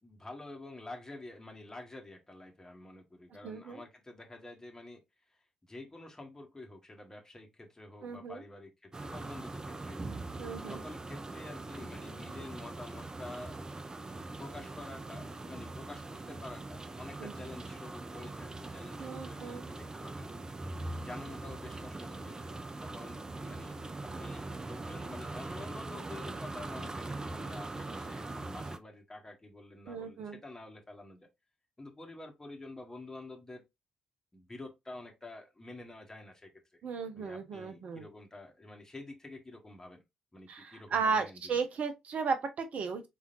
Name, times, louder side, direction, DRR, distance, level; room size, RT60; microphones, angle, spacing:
voice 1, 0.0-5.0 5.3-10.1 10.6-13.6 14.1-20.3 20.9-22.5 22.8-23.8 24.2-31.3 31.8-33.6 34.3-36.8 37.1-40.0 40.3-41.6, left 2 dB, 20° left, 1.6 m, -48 dB
voice 2, 3.4-3.8 8.0-8.4 10.4-10.8 17.2-17.3 19.0-19.7 29.9-30.4 36.8-38.1 40.5-43.1, right 5 dB, 55° right, 1.0 m, -35 dB
sound 1, 8.9-28.8, right 2 dB, 25° right, 0.5 m, -42 dB
4.3 x 3.6 x 2.6 m
figure-of-eight pair, 40°, 3 cm